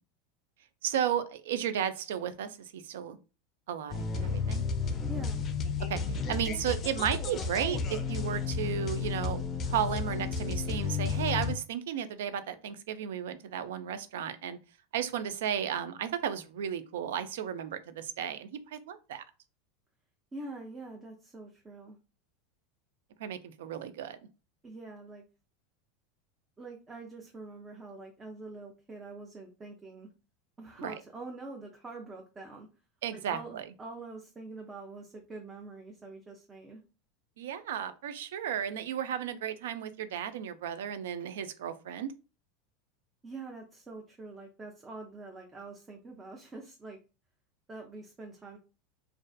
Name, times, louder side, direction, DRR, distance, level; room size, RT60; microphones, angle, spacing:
voice 1, 0.8-3.2 3.7-4.6 5.9-14.6 14.9-19.2 23.2-24.2 30.8-30.9 33.0-33.6 37.4-42.1, right 9 dB, 75° right, 12 dB, 0.3 m, -34 dB
sound 1, 3.9-11.5, left 5 dB, 35° left, 0.4 m, -32 dB
voice 2, 5.1-5.4 20.3-22.0 24.6-25.2 26.6-30.1 30.6-32.7 33.1-36.8 43.2-47.0 47.7-48.6, right 3 dB, 20° right, 1 dB, 0.5 m, -45 dB
2.4 x 2.3 x 2.2 m, 0.33 s
hypercardioid pair, 95°, 0 cm